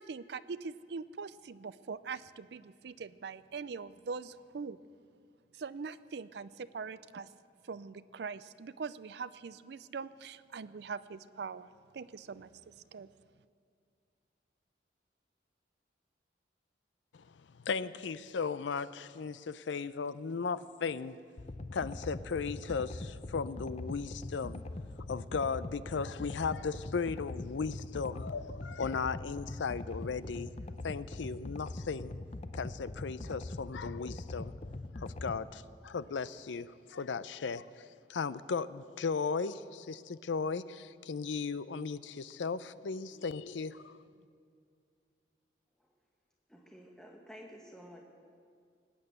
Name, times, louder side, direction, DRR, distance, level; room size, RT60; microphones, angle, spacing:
voice 1, 0.0-4.8 5.5-7.3 7.6-13.1, right 5 dB, 65° right, 15 dB, 0.4 m, -42 dB
voice 2, 17.6-21.2 21.7-24.6 25.1-30.5 30.8-32.1 32.5-34.6 35.0-44.0, left 5 dB, 90° left, 16 dB, 0.5 m, -36 dB
sound 1, 21.4-35.4, left 2 dB, 35° left, 0.6 m, -42 dB
voice 3, 46.5-48.0, equal, 5° left, 0 dB, 1.0 m, -51 dB
19.5 x 8.8 x 8.0 m, 2.2 s
head